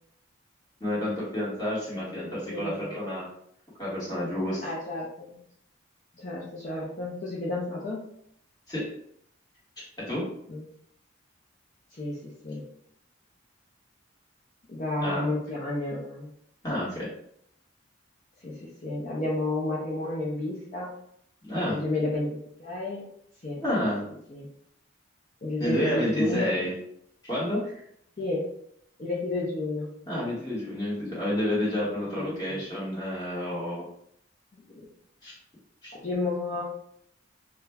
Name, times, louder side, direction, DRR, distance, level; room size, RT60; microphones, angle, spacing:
voice 1, 0.8-3.3 3.8-4.6 8.7-8.9 10.0-10.3 15.0-15.3 16.6-17.1 21.4-21.8 23.6-24.1 25.6-26.8 27.2-27.8 30.1-33.9 35.2-35.4 35.8-35.9, left 1 dB, 20° left, -8 dB, 1.2 m, -30 dB
voice 2, 2.0-3.0 4.6-5.4 6.2-8.0 10.5-10.6 11.9-12.6 14.7-16.3 18.4-20.9 21.6-23.0 23.4-23.6 24.3-24.5 25.4-26.5 28.2-28.5 29.0-29.9 31.2-31.3 32.1-32.6 34.7-34.9 36.0-36.6, left 2 dB, 40° left, -6 dB, 0.5 m, -31 dB
2.4 x 2.1 x 3.3 m, 0.70 s
head